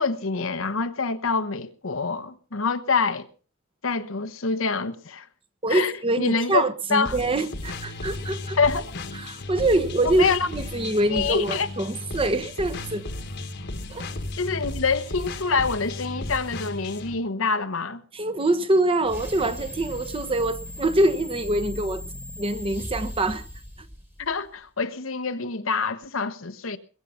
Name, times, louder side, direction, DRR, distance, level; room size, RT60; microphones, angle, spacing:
voice 1, 0.0-3.3 3.8-5.3 5.7-7.2 8.6-8.9 10.0-10.5 11.1-11.7 14.4-18.0 24.2-26.8, left 4 dB, 85° left, 1.2 m, -26 dB
voice 2, 5.6-8.6 9.2-13.0 13.9-14.1 18.1-22.0 22.4-23.4, right 2 dB, 25° right, 1.0 m, -24 dB
sound 1, 7.0-17.1, left 2 dB, 55° left, 1.4 m, -35 dB
sound 2, 19.0-24.5, left 1 dB, 10° right, 1.6 m, -37 dB
21.5 x 8.5 x 5.7 m
head